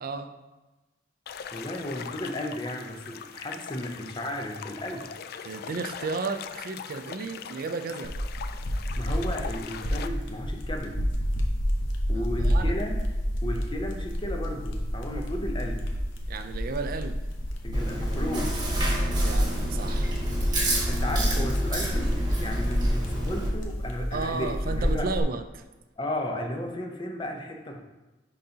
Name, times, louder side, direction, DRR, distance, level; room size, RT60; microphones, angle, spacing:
voice 1, 0.0-0.3 5.4-8.1 12.1-12.7 16.3-17.2 18.9-20.2 24.1-25.6, right 4 dB, 50° right, 8 dB, 0.4 m, -33 dB
sound 1, 1.3-10.1, left 7 dB, 55° left, 0.3 m, -41 dB
voice 2, 1.5-5.1 9.0-11.1 12.1-13.1 13.4-15.9 17.6-18.6 20.9-25.1 26.0-27.8, left 1 dB, 25° left, 3 dB, 0.7 m, -34 dB
sound 2, 8.0-25.2, equal, 80° left, 0.9 m, -29 dB
Chewing mastication, 17.7-23.5, right 1 dB, 25° right, 1.3 m, -29 dB
10.0 x 3.9 x 2.8 m, 1.1 s
head